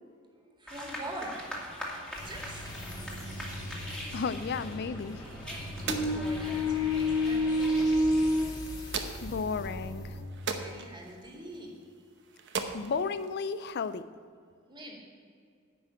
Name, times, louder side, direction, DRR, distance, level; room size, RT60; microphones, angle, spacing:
voice 1, 0.6-1.5 2.2-2.7 5.8-7.7 10.5-11.8 14.7-15.0, right 1 dB, 25° right, 0 dB, 2.1 m, -43 dB
sound 1, 0.7-8.5, left 1 dB, 5° left, 2.1 m, -31 dB
sound 2, 2.1-10.2, left 1 dB, 20° left, 1.6 m, -42 dB
voice 2, 4.1-5.2 8.4-8.5 9.2-10.2 12.7-14.1, left 5 dB, 55° left, 14 dB, 0.4 m, -33 dB
sound 3, 5.0-14.0, right 5 dB, 60° right, 0.9 m, -42 dB
10.0 x 6.0 x 8.7 m, 2.2 s
head